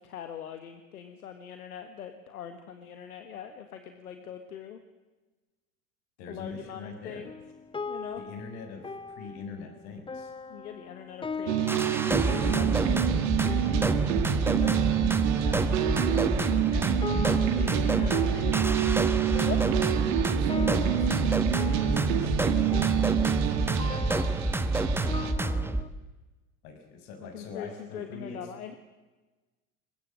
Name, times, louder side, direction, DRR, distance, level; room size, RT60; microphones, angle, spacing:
voice 1, 0.0-4.8 6.3-7.3 7.9-8.2 10.5-13.0 17.5-19.6 27.3-28.7, left 9 dB, 80° left, 8 dB, 1.8 m, -42 dB
voice 2, 6.2-7.2 8.2-10.3 15.3-17.8 19.8-22.9 23.3-24.1 25.4-25.7 26.6-28.4, left 4 dB, 55° left, 5 dB, 6.5 m, -44 dB
sound 1, 7.2-25.9, left 4 dB, 10° left, 0.9 m, -40 dB
sound 2, 11.5-25.3, right 12 dB, 60° right, 2.2 m, -28 dB
sound 3, 11.7-25.8, right 2 dB, 5° right, 1.4 m, -28 dB
23.0 x 20.5 x 7.8 m, 1.2 s
hypercardioid pair, 80°, 44 cm